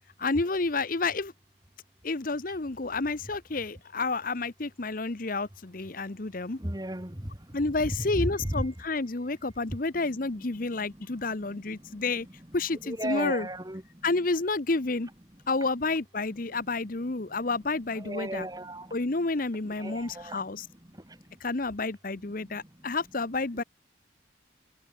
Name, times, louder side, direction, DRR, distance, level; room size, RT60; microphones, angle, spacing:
voice 1, 0.2-1.3 2.0-6.6 7.5-12.3 12.5-13.5 14.0-15.1 15.5-18.5 18.9-20.6 21.4-23.6, left 3 dB, 45° left, 0.9 m, -30 dB
voice 2, 6.6-7.3 7.8-8.7 11.5-11.6 12.0-12.1 12.7-13.8 15.6-15.7 17.9-19.0 19.6-20.4 23.5-23.6, right 1 dB, 20° right, 2.2 m, -34 dB
head